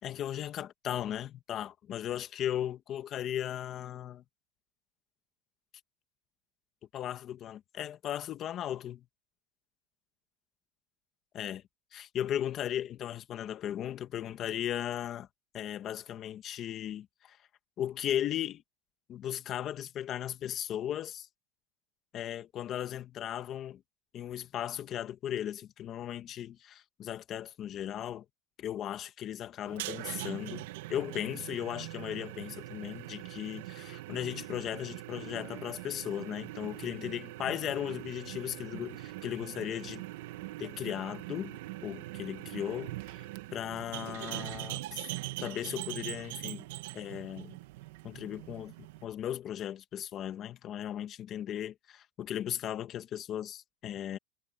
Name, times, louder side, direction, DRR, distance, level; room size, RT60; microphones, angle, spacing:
voice 1, 0.0-4.2 6.9-9.0 11.3-11.6 11.9-15.3 15.5-17.4 17.8-18.6 19.1-21.3 22.1-23.8 24.1-28.2 28.6-40.0 40.6-45.1 45.4-46.6 46.9-47.6 48.0-48.7 49.0-54.2, left 11 dB, 30° left, 1.6 m, -37 dB
sound 1, 29.7-49.1, right 18 dB, 70° right, 1.0 m, -42 dB
supercardioid pair, 150°, 0 cm